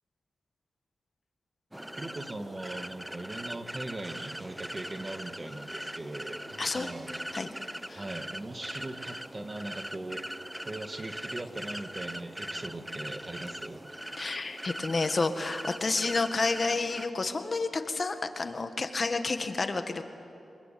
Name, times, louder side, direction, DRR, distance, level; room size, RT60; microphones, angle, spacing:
sound 1, 1.7-17.1, equal, 5° right, 0.8 m, -41 dB
voice 1, 2.0-7.2 7.9-10.2 10.6-13.9, right 2 dB, 30° right, 6 dB, 2.1 m, -40 dB
voice 2, 14.2-20.0, left 3 dB, 45° left, 7 dB, 1.8 m, -30 dB
25.0 x 23.5 x 9.4 m, 2.7 s
cardioid pair, 65°, 0 cm